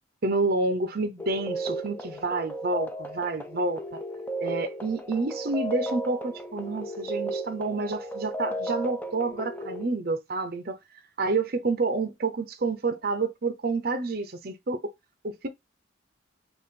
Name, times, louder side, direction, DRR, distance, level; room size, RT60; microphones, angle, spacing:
voice 1, 0.2-3.8 4.4-10.8 11.2-14.9 15.2-15.5, right 3 dB, 50° right, 0.7 m, -29 dB
sound 1, 1.2-9.9, right 1 dB, 10° left, 0.5 m, -35 dB
5.2 x 2.5 x 4.1 m
head